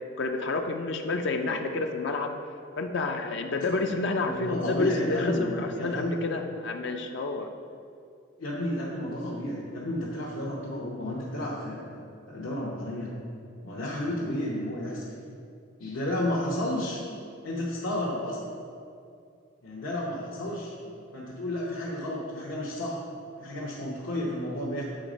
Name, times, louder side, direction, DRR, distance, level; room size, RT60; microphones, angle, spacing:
voice 1, 0.2-2.3 2.8-7.5, left 3 dB, 60° left, 4 dB, 0.4 m, -30 dB
voice 2, 4.2-6.2 8.4-12.0 12.3-13.1 13.6-15.0 15.8-17.0 17.4-18.4 19.6-20.7 21.1-23.0 23.4-24.8, left 1 dB, 75° left, -6 dB, 1.0 m, -32 dB
7.7 x 4.2 x 5.0 m, 2.4 s
head